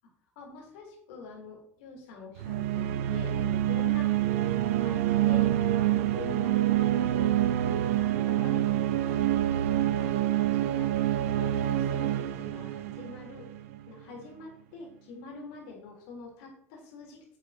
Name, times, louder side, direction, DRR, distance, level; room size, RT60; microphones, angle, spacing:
voice 1, 0.4-4.1 4.4-4.5 4.8-5.5 5.7-7.3 7.6-9.2 9.6-10.9 11.3-13.5 13.9-17.2, left 4 dB, 60° left, -1 dB, 3.9 m, -45 dB
sound 1, 2.4-13.9, right 12 dB, 65° right, 0.7 m, -27 dB
10.5 x 6.9 x 4.4 m, 0.69 s
figure-of-eight pair, 75°, 8 cm